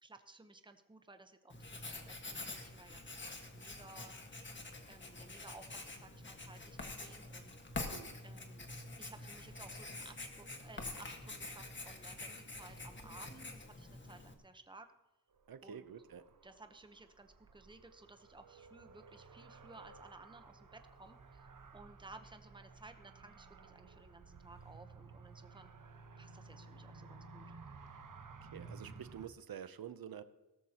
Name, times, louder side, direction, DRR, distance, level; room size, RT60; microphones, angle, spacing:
voice 1, 0.0-4.1 4.9-7.6 8.2-14.9 15.6-15.9 16.4-21.4 21.7-25.7 26.2-27.4, right 2 dB, 15° right, 8 dB, 0.9 m, -57 dB
Writing, 1.5-14.3, left 2 dB, 30° left, 1.6 m, -47 dB
Car, 15.3-29.3, right 4 dB, 55° right, 1.2 m, -55 dB
voice 2, 15.5-16.3 28.4-30.2, right 8 dB, 70° right, 12 dB, 0.7 m, -48 dB
17.5 x 13.5 x 2.9 m, 1.1 s
wide cardioid pair, 125°, 37 cm